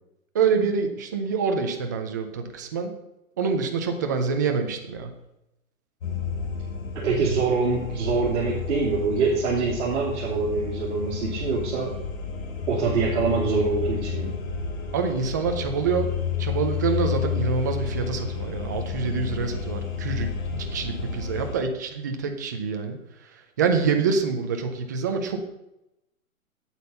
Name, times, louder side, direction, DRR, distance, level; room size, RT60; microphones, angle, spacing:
voice 1, 0.3-2.9 3.4-5.1 14.9-16.1 16.4-20.3 20.7-23.0 23.6-25.4, right 5 dB, 15° right, 5 dB, 0.4 m, -26 dB
sound 1, 6.0-21.6, left 6 dB, 70° left, 2.8 m, -31 dB
voice 2, 6.9-12.0 12.7-14.4, right 4 dB, 55° right, -6 dB, 2.8 m, -25 dB
8.7 x 8.2 x 5.4 m, 0.89 s
hypercardioid pair, 155°, 42 cm